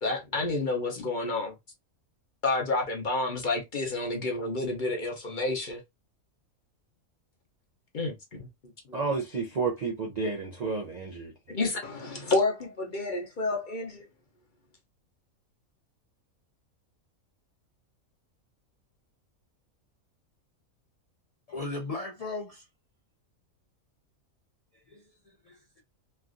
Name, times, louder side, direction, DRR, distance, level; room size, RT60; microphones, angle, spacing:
voice 1, 0.0-1.5 2.4-5.8 7.9-8.5 8.9-9.0 11.5-14.0, left 2 dB, 45° left, 0.7 m, -29 dB
voice 2, 8.9-11.3, right 4 dB, 55° right, 0.4 m, -31 dB
voice 3, 21.5-22.7 24.7-25.8, left 3 dB, 70° left, 0.3 m, -38 dB
3.3 x 2.4 x 2.4 m
omnidirectional pair, 1.4 m